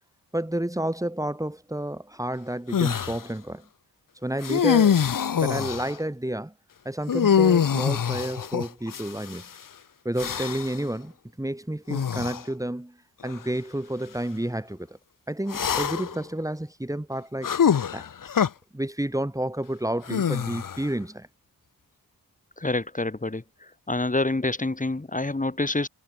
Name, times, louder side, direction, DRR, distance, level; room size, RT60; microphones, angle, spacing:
voice 1, 0.3-3.7 4.2-5.1 5.3-6.5 6.9-9.5 10.0-11.1 11.4-13.0 13.2-15.0 15.3-17.5 17.9-18.0 18.7-21.3, right 1 dB, 10° right, 5.6 m, -30 dB
sound 1, 2.7-3.2 4.4-5.9 7.1-9.4 10.2-10.8 11.9-12.4 13.2-13.4 15.5-16.2 17.4-18.5 20.1-20.9, left 8 dB, 60° left, 1.6 m, -24 dB
voice 2, 22.6-23.4 23.9-25.9, left 2 dB, 20° left, 6.1 m, -27 dB
cardioid pair, 85°, 36 cm